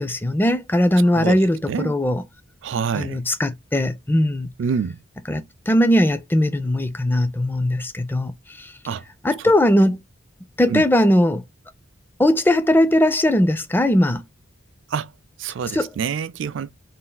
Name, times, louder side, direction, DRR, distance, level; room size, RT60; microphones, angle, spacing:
voice 1, 0.0-2.2 2.9-4.5 5.3-8.7 9.2-10.0 10.6-11.4 12.2-14.2 15.7-15.9, left 1 dB, 10° left, 0.4 m, -19 dB
voice 2, 2.6-3.2 4.6-5.0 8.9-9.0 9.4-9.5 10.7-10.8 14.9-15.1 15.4-16.7, right 6 dB, 65° right, 0.3 m, -26 dB
3.4 x 2.4 x 3.7 m
head